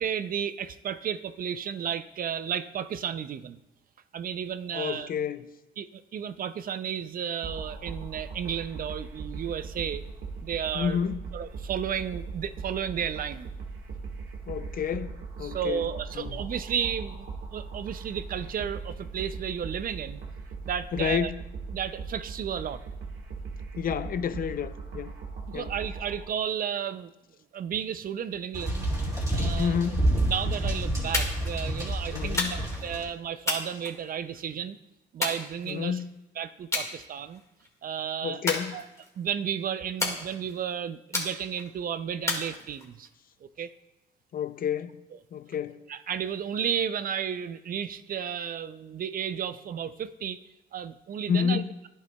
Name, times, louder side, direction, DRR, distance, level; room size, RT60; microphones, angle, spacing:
voice 1, 0.0-3.6 4.1-5.1 5.8-10.0 10.4-11.0 11.3-13.5 15.4-17.3 17.5-20.2 20.6-21.3 21.7-22.8 25.5-27.1 27.5-28.9 29.3-29.8 30.3-34.8 35.1-36.0 36.4-37.4 37.8-38.4 38.7-38.8 39.2-43.1 43.6-43.7 45.9-50.4 50.7-51.6, right 8 dB, 45° right, 0.4 m, -33 dB
voice 2, 4.7-5.5 10.7-11.2 14.5-15.9 16.1-16.4 20.9-21.4 23.8-25.1 25.5-25.7 29.6-30.1 32.1-32.6 35.6-36.1 38.2-38.8 44.3-45.0 45.3-45.8 51.3-51.7, left 7 dB, 45° left, 0.5 m, -30 dB
sound 1, 7.4-26.2, right 4 dB, 65° right, 1.4 m, -39 dB
sound 2, 28.5-33.0, right 1 dB, 15° right, 2.5 m, -28 dB
sound 3, 31.1-31.5 32.4-32.8 33.5-34.4 35.2-36.0 36.7-36.9 37.3-37.7 38.5-39.2 40.0-40.6 41.1-41.7 42.3-43.1, left 2 dB, 15° left, 1.7 m, -31 dB
10.5 x 6.5 x 2.2 m
cardioid pair, 90°, 20 cm